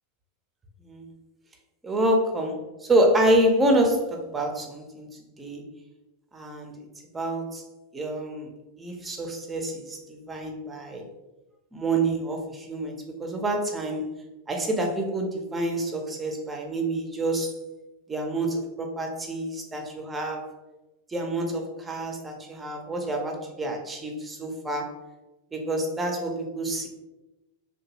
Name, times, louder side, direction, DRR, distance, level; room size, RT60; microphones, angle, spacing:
voice 1, 1.8-5.1 5.4-5.6 6.3-6.7 7.1-7.6 7.9-8.5 8.8-11.1 11.7-14.1 14.5-17.5 18.1-20.5 21.1-25.0 25.5-26.9, right 1 dB, 15° right, 2 dB, 0.5 m, -27 dB
2.8 x 2.2 x 3.0 m, 1.0 s
figure-of-eight pair, 90°, 0 cm